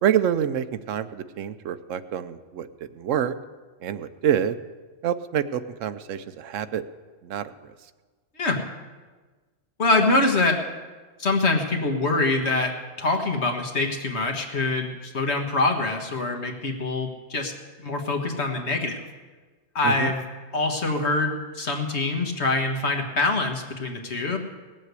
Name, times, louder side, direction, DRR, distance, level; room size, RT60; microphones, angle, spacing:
voice 1, 0.0-2.7 2.9-3.3 3.8-4.6 5.0-6.8 7.2-7.7 19.8-20.1, right 9 dB, 80° right, 12 dB, 1.0 m, -27 dB
voice 2, 9.8-10.6 11.2-17.5 17.8-19.0 19.8-20.2 20.5-24.4, left 2 dB, 60° left, 3 dB, 1.8 m, -24 dB
18.5 x 7.5 x 8.2 m, 1.3 s
omnidirectional pair, 1.3 m